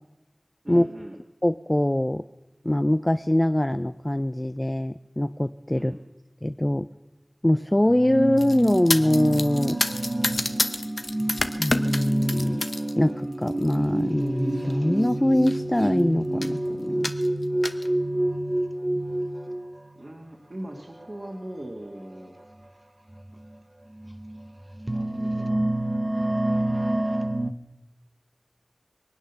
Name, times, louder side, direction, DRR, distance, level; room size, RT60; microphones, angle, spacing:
voice 1, 0.6-1.2 5.7-6.0 19.9-22.4 24.9-25.7 26.3-27.0, right 1 dB, 55° right, -1 dB, 1.9 m, -40 dB
voice 2, 1.4-2.2 2.6-5.9 6.4-6.9 7.4-9.8 11.6-12.6 13.0-17.1, left 1 dB, 25° left, 11 dB, 0.4 m, -23 dB
sound 1, 7.9-20.2 21.0-21.3 22.4-22.5 23.1-23.3 24.0-27.5, right 1 dB, 35° right, 0.8 m, -28 dB
sound 2, 8.4-12.9 13.3-13.8 14.6-14.7 15.0-15.1 15.4-15.9 16.4-16.6 17.0-17.9, left 2 dB, 65° left, 0.8 m, -29 dB
22.5 x 8.9 x 6.9 m, 1.1 s
wide cardioid pair, 40°, 0 cm